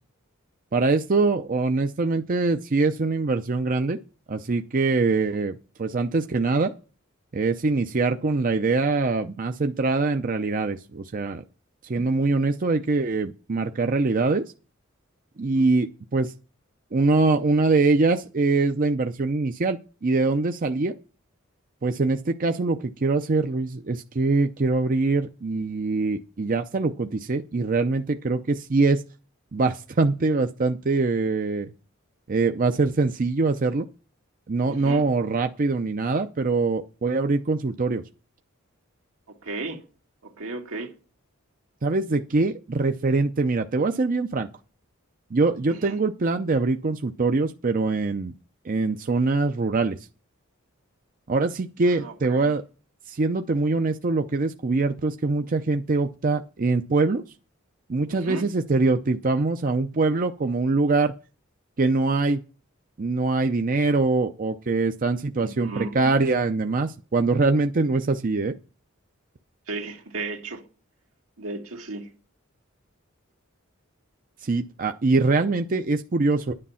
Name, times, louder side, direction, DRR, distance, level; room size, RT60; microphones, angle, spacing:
voice 1, 0.7-4.0 4.3-6.7 7.3-11.4 11.8-14.4 15.4-16.3 16.9-20.9 21.8-29.0 29.5-31.7 32.3-33.9 34.5-38.0 41.8-44.5 45.3-48.3 48.6-50.0 51.3-52.6 53.1-57.2 57.9-61.1 61.8-62.4 63.0-68.5 74.4-76.5, right 3 dB, 40° right, 0.6 m, -23 dB
voice 2, 34.7-35.0 39.3-39.8 40.2-40.9 45.7-46.0 52.0-52.5 58.1-58.5 65.4-66.2 69.7-70.6 71.4-72.1, right 3 dB, 85° right, 2.1 m, -35 dB
10.0 x 9.9 x 5.6 m
head